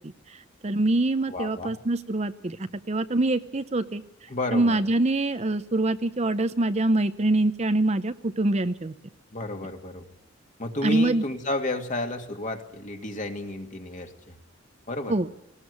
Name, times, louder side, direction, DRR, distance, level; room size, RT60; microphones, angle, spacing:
voice 1, 0.6-2.6 2.9-4.0 4.5-8.9 10.8-11.2 15.1-15.3, right 2 dB, 35° right, 11 dB, 0.7 m, -24 dB
voice 2, 1.3-1.7 4.3-4.8 9.3-10.1 10.6-14.3 14.9-15.1, left 2 dB, 40° left, 4 dB, 2.4 m, -32 dB
19.5 x 18.5 x 8.3 m, 0.80 s
head